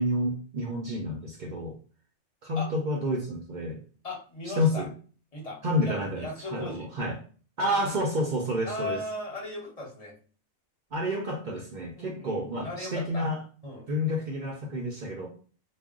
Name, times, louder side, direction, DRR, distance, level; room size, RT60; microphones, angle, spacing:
voice 1, 0.0-1.8 2.4-3.8 4.6-4.9 5.6-7.2 7.6-9.0 10.9-13.4 13.9-15.3, left 1 dB, 70° right, 0 dB, 0.4 m, -29 dB
voice 2, 4.0-4.8 5.3-5.6 5.8-6.9 8.6-10.1 12.0-13.3 13.6-13.8, left 2 dB, 30° left, -2 dB, 0.9 m, -37 dB
2.4 x 2.0 x 3.5 m, 0.40 s
omnidirectional pair, 1.4 m